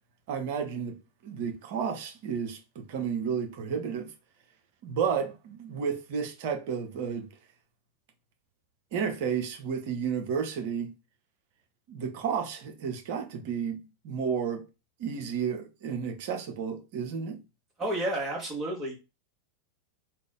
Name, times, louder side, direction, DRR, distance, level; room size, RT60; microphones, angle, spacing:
voice 1, 0.3-0.9 1.2-4.1 4.8-7.3 8.9-10.9 11.9-14.7 15.0-17.4, right 7 dB, 50° right, 0.8 m, -32 dB
voice 2, 17.8-19.0, right 1 dB, 15° right, 1.7 m, -31 dB
3.4 x 2.5 x 3.6 m
figure-of-eight pair, 90°, 0 cm